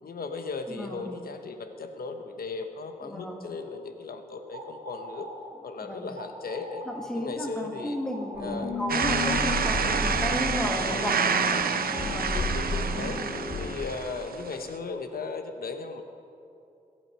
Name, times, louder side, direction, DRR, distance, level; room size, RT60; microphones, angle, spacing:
voice 1, 0.0-5.3 5.6-6.8 7.1-8.0 8.4-8.7 9.1-9.4 12.0-13.2 13.6-16.0, left 4 dB, 90° left, 6 dB, 1.0 m, -37 dB
voice 2, 0.7-1.2 3.0-3.4 5.8-6.1 6.9-8.5 8.8-11.2 12.0-12.3 12.9-13.2, equal, 5° left, 1 dB, 1.5 m, -34 dB
sound 1, 4.3-13.2, right 1 dB, 65° right, 2.6 m, -44 dB
sound 2, 8.3-13.7, left 3 dB, 55° left, 1.8 m, -32 dB
sound 3, 8.9-14.7, right 6 dB, 85° right, 0.8 m, -28 dB
22.5 x 8.6 x 5.6 m, 2.6 s
wide cardioid pair, 170°, 15 cm